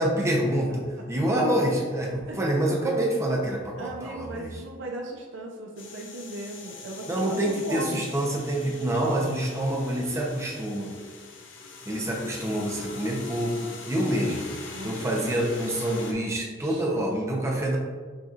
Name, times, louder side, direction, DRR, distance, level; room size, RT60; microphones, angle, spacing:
voice 1, 0.0-4.5 7.1-10.9 11.9-14.5 14.8-17.8, right 1 dB, 15° right, -2 dB, 0.7 m, -27 dB
voice 2, 3.8-8.1 14.7-15.0 16.6-16.8, right 2 dB, 70° right, 0 dB, 0.5 m, -37 dB
sound 1, 5.8-16.1, left 3 dB, 70° left, 0.6 m, -42 dB
6.3 x 3.0 x 2.4 m, 1.5 s
head